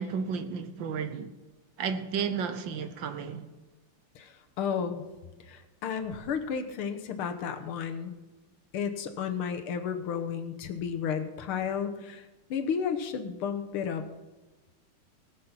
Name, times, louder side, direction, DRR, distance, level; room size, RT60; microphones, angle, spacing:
voice 1, 0.0-1.3 1.8-3.4, right 6 dB, 65° right, 1.4 m, -32 dB
voice 2, 4.6-5.0 5.5-8.2 8.7-12.2 12.5-14.0, left 7 dB, 80° left, 1.9 m, -32 dB
18.5 x 7.5 x 5.7 m
omnidirectional pair, 2.4 m